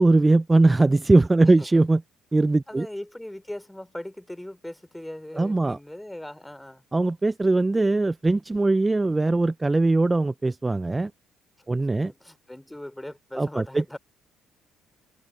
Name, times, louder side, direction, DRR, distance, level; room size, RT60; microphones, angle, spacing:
voice 1, 0.0-2.0 2.3-2.9 5.3-5.8 6.9-11.1 11.7-12.1 13.4-14.0, right 2 dB, 20° right, 0.5 m, -21 dB
voice 2, 1.4-1.8 2.7-6.8 11.7-14.0, left 1 dB, 5° left, 3.8 m, -39 dB
supercardioid pair, 60°, 0 cm